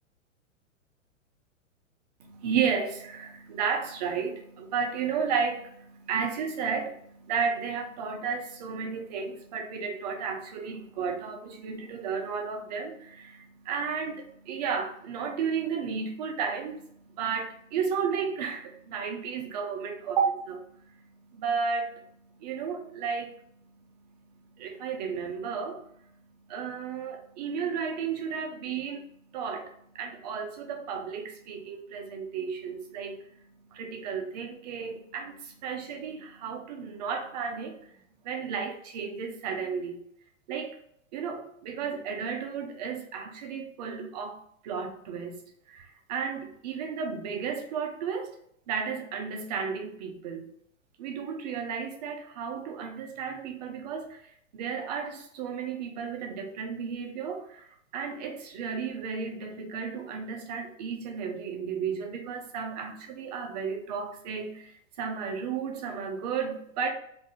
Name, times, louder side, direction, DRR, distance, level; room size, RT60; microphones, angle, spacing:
voice 1, 2.2-26.2 26.5-37.9 38.2-40.0 40.5-40.8 41.1-44.4 44.6-45.4 45.7-48.3 48.7-50.5 51.0-57.7 57.9-66.9, right 6 dB, 30° right, 3 dB, 0.7 m, -33 dB
3.6 x 2.8 x 4.1 m, 0.70 s
figure-of-eight pair, 110°, 40 cm